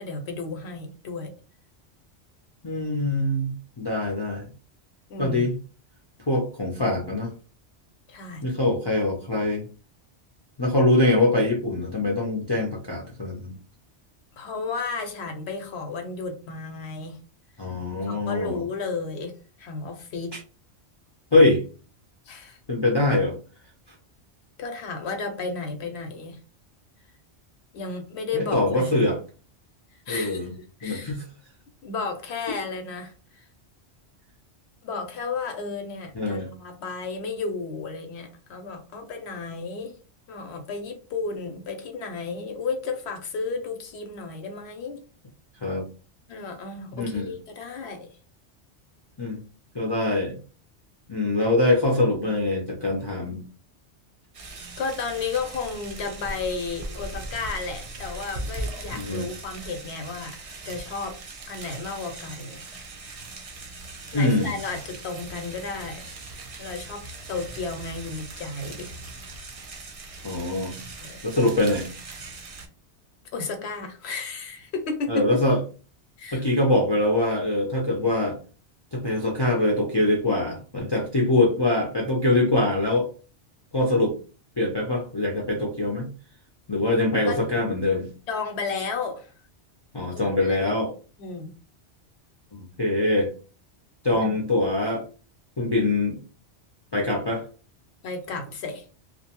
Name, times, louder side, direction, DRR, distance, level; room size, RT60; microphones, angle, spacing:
voice 1, 0.0-1.3 5.1-5.5 8.1-8.4 14.4-17.2 18.1-20.4 22.3-22.6 24.6-26.4 27.7-29.1 30.1-30.5 30.8-31.2 31.8-33.4 34.8-39.9 40.3-45.0 46.3-48.1 54.8-60.4 60.7-61.2 61.5-62.6 64.1-66.2 66.6-68.9 71.0-71.3 73.3-75.2 76.2-76.4 87.3-87.4 88.3-89.3 90.1-90.7 91.2-91.5 94.2-94.3 98.0-98.8, left 4 dB, 75° left, 5 dB, 0.8 m, -33 dB
voice 2, 2.6-4.5 5.2-5.6 6.3-7.3 8.4-9.7 10.6-13.5 17.6-18.6 20.3-20.4 21.3-21.6 22.7-23.4 28.3-29.2 30.1-30.5 30.8-31.2 36.1-36.5 45.6-45.9 46.9-47.3 49.2-49.4 49.7-50.4 51.1-53.4 58.9-59.3 64.1-64.5 70.2-70.7 71.2-71.9 75.1-75.6 76.3-78.4 78.9-83.1 83.7-84.2 84.6-86.1 86.7-88.1 89.9-90.9 92.5-93.3 94.0-95.0 95.6-96.2 96.9-97.4, left 2 dB, 35° left, -2 dB, 0.4 m, -23 dB
sound 1, 54.3-72.7, right 2 dB, 50° right, 0.4 m, -39 dB
2.5 x 2.1 x 2.8 m, 0.36 s
omnidirectional pair, 1.1 m